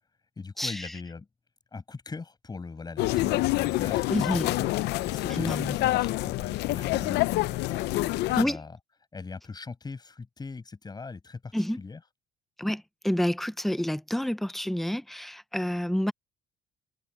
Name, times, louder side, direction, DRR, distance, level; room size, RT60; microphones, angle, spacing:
voice 1, 0.4-1.3 1.7-4.7 5.1-7.8 8.2-8.8 9.1-12.0, left 4 dB, 25° left, 7.0 m, -41 dB
sound 1, 3.0-8.4, left 18 dB, 85° left, 0.6 m, -27 dB
voice 2, 4.1-4.5 5.4-5.7 8.4-8.6 11.5-11.8 12.6-16.1, equal, ahead, 0.7 m, -28 dB
cardioid pair, 110°, 17 cm